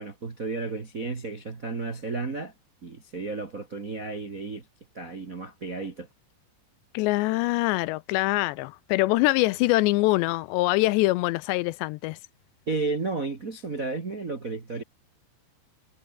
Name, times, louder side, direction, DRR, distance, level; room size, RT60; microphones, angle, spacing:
voice 1, 0.0-2.5 2.8-4.7 4.9-6.1 12.7-14.8, right 3 dB, 80° right, 0.7 m, -32 dB
voice 2, 6.9-12.2, left 20 dB, 85° left, 2.7 m, -24 dB
omnidirectional pair, 5.2 m